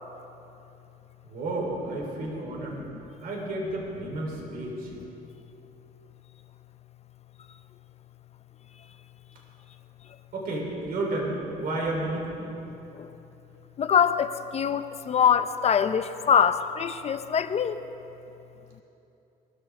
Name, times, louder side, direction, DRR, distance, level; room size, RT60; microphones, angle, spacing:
voice 1, 1.2-2.8 3.2-4.9 10.3-12.5, right 2 dB, 60° right, -2 dB, 3.8 m, -31 dB
voice 2, 13.8-17.7, left 7 dB, 40° left, 11 dB, 0.7 m, -23 dB
22.0 x 14.0 x 3.7 m, 2.9 s
cardioid pair, 110°, 17 cm